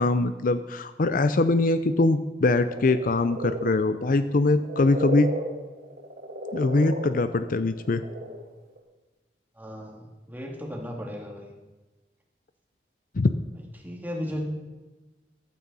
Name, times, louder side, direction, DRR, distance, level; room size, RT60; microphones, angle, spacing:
voice 1, 0.0-5.3 6.5-8.0 13.1-13.3, left 2 dB, 50° left, 11 dB, 0.5 m, -22 dB
sound 1, 2.7-8.4 8.7-8.8, right 1 dB, 55° right, 3.1 m, -34 dB
voice 2, 9.5-11.5 13.8-14.4, equal, 10° right, 0 dB, 2.3 m, -35 dB
14.5 x 12.5 x 4.1 m, 1.2 s
head